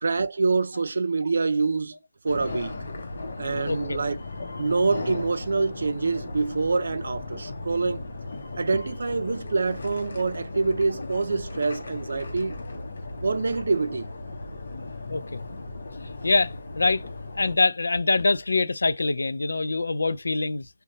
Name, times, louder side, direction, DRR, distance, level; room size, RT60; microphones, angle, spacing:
voice 1, 0.0-2.0 2.2-2.7 3.4-4.2 4.6-8.0 8.6-12.6 13.2-14.1, right 4 dB, 70° right, 0.4 m, -26 dB
sound 1, 2.3-17.6, left 2 dB, 65° left, 0.7 m, -36 dB
voice 2, 3.7-4.0 15.1-15.4 16.2-17.0 17.3-20.7, left 3 dB, 90° left, 0.3 m, -24 dB
2.7 x 2.2 x 2.6 m
hypercardioid pair, 165°, 0 cm